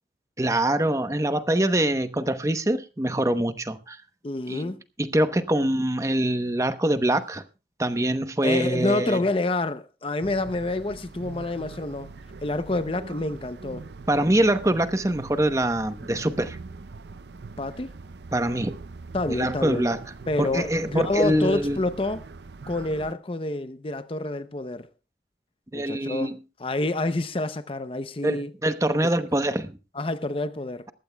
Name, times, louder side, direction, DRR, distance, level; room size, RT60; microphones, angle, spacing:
voice 1, 0.4-4.0 4.5-4.7 5.0-7.4 7.8-9.2 14.1-16.6 18.3-18.8 19.3-20.0 20.4-21.8 25.7-26.3 28.2-29.8, right 1 dB, 15° right, 0.9 m, -24 dB
voice 2, 4.2-4.8 8.4-12.1 12.4-13.9 17.6-17.9 19.1-19.9 20.3-22.3 22.7-24.9 25.7-26.3 26.6-28.5 29.2-29.3 30.0-30.9, left 2 dB, 30° left, 0.6 m, -28 dB
sound 1, 10.2-23.1, right 4 dB, 75° right, 0.6 m, -42 dB
21.0 x 15.0 x 2.3 m
head